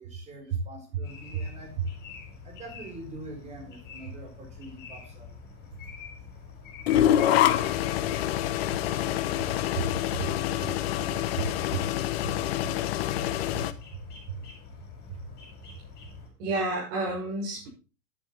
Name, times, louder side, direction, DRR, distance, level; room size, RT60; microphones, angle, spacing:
voice 1, 0.0-1.8 2.4-5.3 9.3-9.5, right 1 dB, 15° right, 4 dB, 3.9 m, -45 dB
sound 1, 1.0-16.3, left 5 dB, 20° left, 5.8 m, -46 dB
sound 2, 6.9-13.7, left 12 dB, 40° left, 1.0 m, -26 dB
voice 2, 9.8-10.3 11.0-11.9 12.2-12.3 14.3-14.4 16.4-17.7, right 3 dB, 45° right, -4 dB, 6.1 m, -31 dB
11.0 x 9.3 x 4.3 m, 0.33 s
hypercardioid pair, 145°, 48 cm